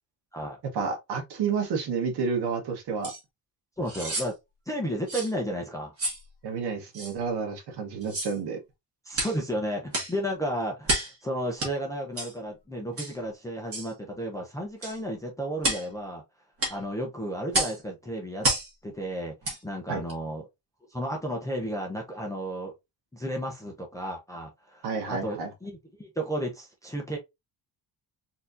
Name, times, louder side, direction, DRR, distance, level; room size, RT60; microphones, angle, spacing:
voice 1, 0.7-3.1 6.4-8.6 19.9-20.0 24.8-25.5, right 5 dB, 60° right, 1.2 m, -30 dB
sound 1, 3.0-3.2 3.9-4.3 5.1-5.3 6.0-6.2 6.9-7.1 8.0-8.4 9.1-9.4 9.9-10.2 10.8-11.2 11.6-11.7 12.2-12.3 13.0-13.2 13.7-13.9 14.8-15.0 15.6-15.9 16.6-16.8 17.5-17.8 18.4-18.7 19.4-19.6 20.1-20.2, right 2 dB, 30° right, 1.5 m, -29 dB
voice 2, 3.8-4.3 4.7-5.9 9.1-16.2 16.7-18.5 18.8-19.3 19.6-20.5 20.9-22.7 23.1-27.2, equal, 10° left, 0.5 m, -33 dB
4.2 x 2.8 x 2.5 m
cardioid pair, 180°, 44 cm